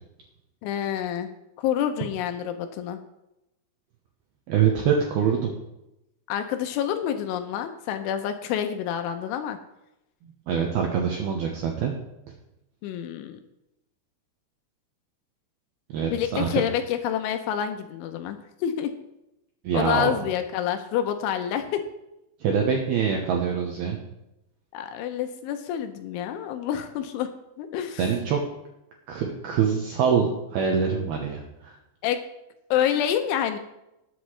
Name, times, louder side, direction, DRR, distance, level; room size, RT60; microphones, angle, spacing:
voice 1, 0.6-1.3 1.6-3.0 6.3-9.6 12.8-13.4 16.1-18.9 19.7-21.8 24.7-27.3 27.6-28.1 32.0-32.2 32.7-33.6, left 10 dB, 80° left, 7 dB, 2.9 m, -28 dB
voice 2, 4.5-5.5 10.5-11.9 15.9-16.6 19.6-20.1 22.4-24.0 28.0-28.4 29.1-31.7, right 7 dB, 80° right, 1 dB, 2.2 m, -24 dB
20.0 x 8.0 x 3.2 m, 0.90 s
omnidirectional pair, 5.8 m